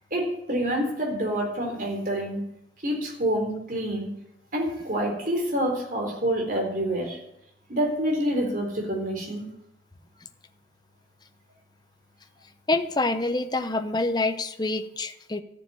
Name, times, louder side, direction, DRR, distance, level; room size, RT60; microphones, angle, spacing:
voice 1, 0.1-2.4 2.8-4.1 4.5-7.2 7.7-9.4, right 1 dB, 50° right, 1 dB, 4.0 m, -27 dB
voice 2, 12.7-15.4, left 2 dB, 25° left, 9 dB, 0.8 m, -26 dB
13.5 x 7.1 x 9.5 m, 0.80 s
head